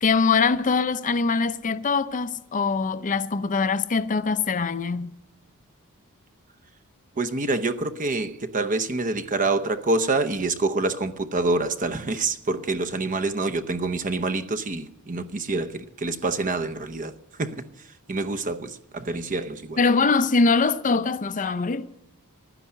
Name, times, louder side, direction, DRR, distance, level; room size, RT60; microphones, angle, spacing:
voice 1, 0.0-5.1 19.8-21.9, left 4 dB, 35° left, 0.6 m, -23 dB
voice 2, 7.2-17.1 17.4-17.6 18.1-19.8, right 3 dB, 35° right, 0.8 m, -26 dB
12.5 x 9.9 x 9.9 m
head